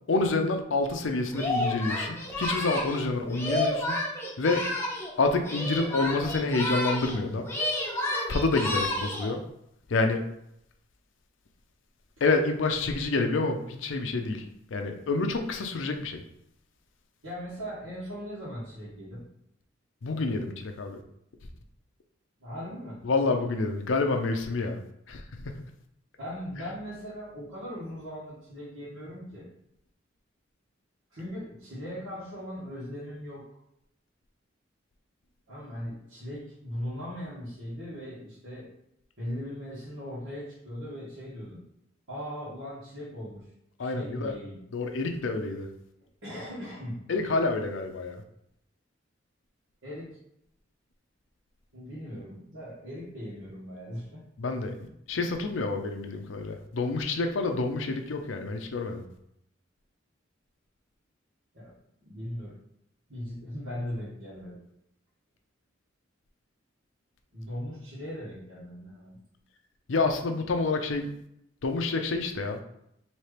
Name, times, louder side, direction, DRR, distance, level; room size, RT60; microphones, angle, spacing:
voice 1, 0.1-4.0 4.4-4.6 5.2-7.5 8.3-9.4 9.9-10.2 12.2-14.4 14.7-16.2 20.0-21.0 23.0-24.8 25.1-25.4 43.8-44.3 44.7-45.7 47.1-48.2 54.4-59.0 69.9-71.1 71.6-72.6, left 3 dB, 75° left, 5 dB, 0.5 m, -28 dB
Singing, 1.3-5.1 5.4-7.2 7.4-9.3, left 1 dB, 15° left, 0.7 m, -30 dB
voice 2, 17.2-19.2 22.4-23.0 26.2-29.5 31.1-33.5 35.5-38.7 39.2-41.6 42.1-43.5 43.8-44.6 46.2-47.0 49.8-50.2 51.7-54.2 61.5-61.7 62.0-62.5 63.1-64.6 67.3-69.2, equal, 80° right, -11 dB, 1.6 m, -39 dB
4.3 x 2.9 x 3.3 m, 0.77 s
head